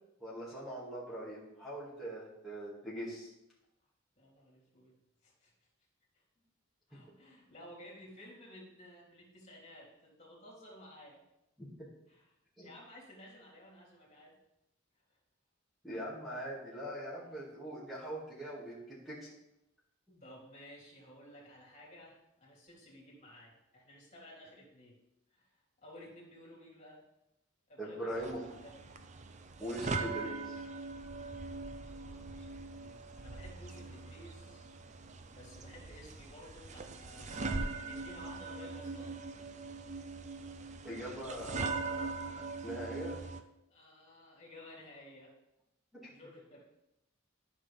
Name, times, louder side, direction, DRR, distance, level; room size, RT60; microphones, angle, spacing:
voice 1, 0.2-3.3 11.6-11.9 12.6-12.7 15.8-19.3 20.1-20.2 27.8-28.4 29.6-30.6 40.8-43.2 45.9-46.0, right 1 dB, ahead, -8 dB, 2.2 m, -42 dB
voice 2, 4.2-4.9 5.2-5.5 6.1-6.2 6.9-11.2 12.1-12.3 12.6-14.4 16.3-16.4 20.2-25.0 25.3-27.0 27.7-28.8 31.4-34.7 35.3-39.2 43.1-43.2 43.7-45.3 46.0-46.6, left 1 dB, 35° left, -4 dB, 3.1 m, -55 dB
sound 1, 28.1-43.4, right 3 dB, 35° right, 0.6 m, -41 dB
12.5 x 6.1 x 3.5 m, 0.88 s
head